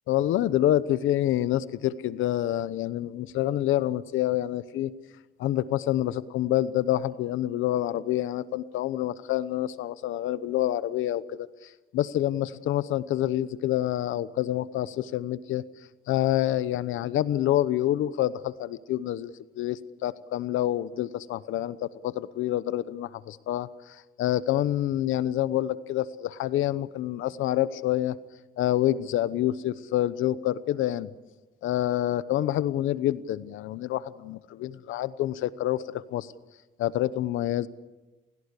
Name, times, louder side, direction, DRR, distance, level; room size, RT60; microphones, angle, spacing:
voice 1, 0.1-4.9 5.4-15.6 16.1-28.1 28.6-31.1 31.6-36.3 36.8-37.7, left 13 dB, 85° left, 15 dB, 0.9 m, -27 dB
29.5 x 16.5 x 8.3 m, 1.1 s
cardioid pair, 90°, 20 cm